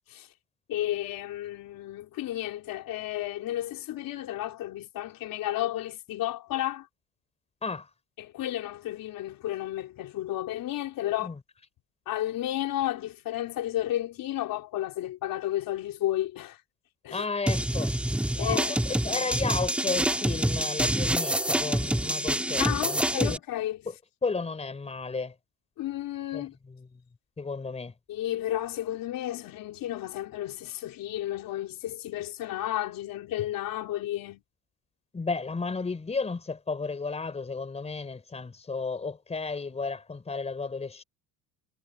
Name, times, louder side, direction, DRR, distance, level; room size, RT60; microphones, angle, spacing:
voice 1, 0.7-6.9 8.2-11.3 12.1-16.6 17.0-17.2 18.4-18.7 22.6-23.8 25.8-26.5 28.1-34.4, left 13 dB, 55° left, 3.7 m, -32 dB
voice 2, 17.1-17.9 18.3-23.4 23.8-23.9 24.2-25.3 26.3-26.9 27.4-27.9 35.1-41.0, left 4 dB, 15° left, 4.5 m, -33 dB
sound 1, 17.5-23.4, right 1 dB, 5° right, 1.9 m, -27 dB
cardioid pair, 155°, 40 cm